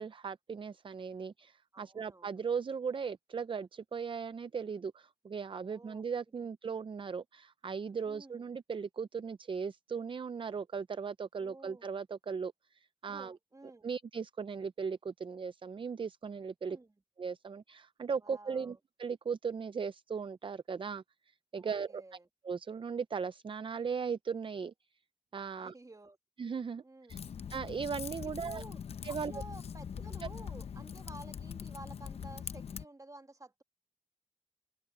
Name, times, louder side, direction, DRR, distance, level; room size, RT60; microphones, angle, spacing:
voice 1, 0.0-13.4 13.8-16.8 17.2-21.0 21.5-22.0 22.4-24.7 25.3-25.7 26.4-26.8 27.1-27.2 27.5-28.6 29.0-29.3, right 6 dB, 55° right, 0.5 m, -38 dB
voice 2, 1.7-2.4 5.5-6.0 6.3-6.5 8.1-8.5 11.4-11.9 13.1-13.9 16.7-16.9 18.2-18.8 21.5-22.3 25.5-26.2 26.8-27.3 28.2-28.8 29.1-33.6, right 2 dB, 35° right, 2.1 m, -53 dB
Typing, 27.1-32.9, left 7 dB, 85° left, 0.6 m, -42 dB
cardioid pair, 50°, 10 cm